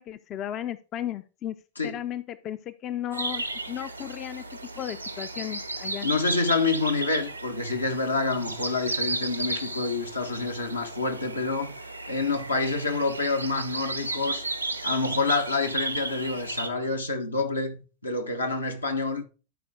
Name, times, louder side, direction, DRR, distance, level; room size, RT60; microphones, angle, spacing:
voice 1, 0.0-1.6 1.8-4.4 4.8-6.1, left 11 dB, 30° left, 0.5 m, -35 dB
voice 2, 1.8-2.1 6.0-11.7 12.1-14.4 14.8-19.2, left 3 dB, 80° left, 1.2 m, -27 dB
sound 1, 3.1-16.7, right 2 dB, 85° right, 0.8 m, -34 dB
12.0 x 4.8 x 3.7 m
figure-of-eight pair, 90°, 0 cm